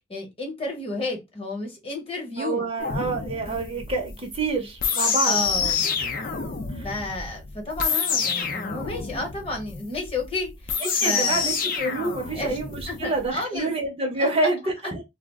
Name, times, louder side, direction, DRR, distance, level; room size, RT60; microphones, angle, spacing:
voice 1, 0.1-2.6 5.2-5.9 6.8-11.5 12.3-12.5 12.9-13.7 14.2-14.3 14.8-14.9, left 2 dB, 30° left, 0.9 m, -32 dB
voice 2, 2.4-5.7 6.7-6.9 10.8-15.0, right 2 dB, 30° right, 0.6 m, -27 dB
sound 1, 2.8-13.2, left 6 dB, 50° left, 0.5 m, -28 dB
2.4 x 2.0 x 3.4 m
head